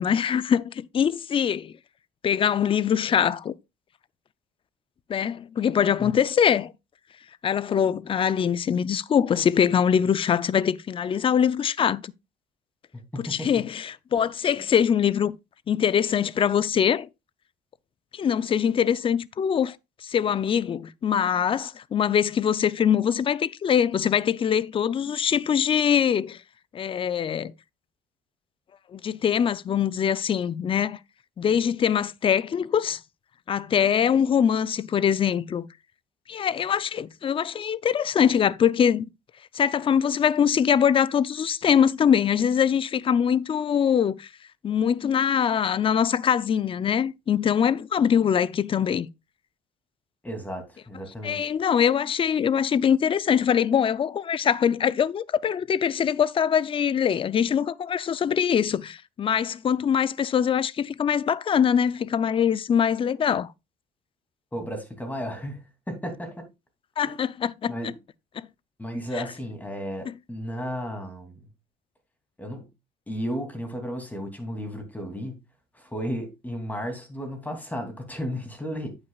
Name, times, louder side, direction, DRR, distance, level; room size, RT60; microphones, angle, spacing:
voice 1, 0.0-1.7 2.2-3.5 5.1-6.7 7.4-12.1 13.2-15.4 15.7-17.1 18.1-19.8 20.0-26.4 26.7-27.5 28.9-31.0 31.4-33.0 33.5-35.7 36.3-39.1 39.5-44.3 44.6-49.1 51.2-63.5 67.0-67.7 68.4-68.5 70.1-70.2, left 8 dB, 30° left, 0.5 m, -23 dB
voice 2, 13.1-13.7 50.2-51.5 64.5-66.5 67.0-67.2 67.7-68.0 68.8-71.4 72.4-72.7 73.1-75.4 75.7-79.0, equal, 10° left, 2.8 m, -34 dB
9.1 x 8.8 x 2.4 m
cardioid pair, 110°, 17 cm